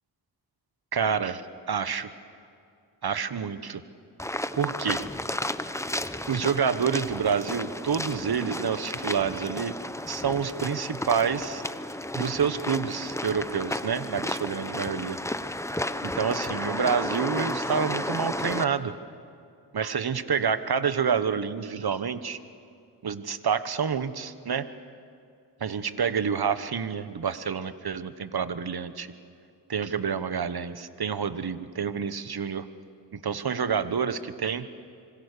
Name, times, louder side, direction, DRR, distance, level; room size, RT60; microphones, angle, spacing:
voice 1, 0.9-1.4 1.7-2.1 3.0-3.8 4.5-5.0 6.3-9.7 10.1-11.6 12.1-15.2 16.0-18.9 19.7-22.4 23.0-24.7 25.6-29.1 29.7-32.7 33.1-34.7, right 6 dB, 55° right, 12 dB, 1.3 m, -28 dB
sound 1, 4.2-18.6, left 1 dB, 5° left, 0.9 m, -33 dB
26.0 x 24.0 x 6.8 m, 2.4 s
cardioid pair, 50°, 44 cm